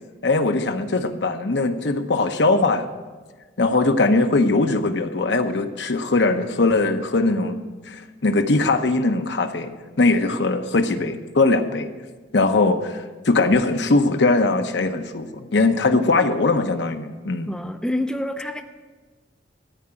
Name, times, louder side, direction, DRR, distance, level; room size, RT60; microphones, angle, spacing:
voice 1, 0.2-2.9 3.6-7.6 7.9-9.7 10.0-11.9 12.3-17.5, left 3 dB, 65° left, 8 dB, 0.8 m, -20 dB
voice 2, 17.5-18.6, left 1 dB, 5° left, 6 dB, 0.4 m, -27 dB
13.5 x 4.8 x 8.8 m, 1.4 s
head